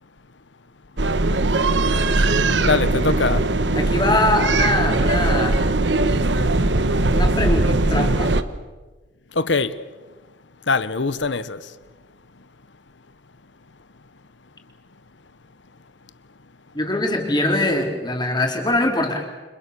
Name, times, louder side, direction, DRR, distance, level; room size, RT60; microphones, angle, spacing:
sound 1, 1.0-8.4, right 2 dB, 70° right, 1.3 m, -20 dB
voice 1, 2.6-3.5 9.3-9.8 10.7-11.6, left 4 dB, 75° left, 1.1 m, -22 dB
voice 2, 3.7-5.7 7.1-8.3 16.7-19.2, left 1 dB, 25° left, 4.3 m, -22 dB
30.0 x 26.0 x 7.0 m
head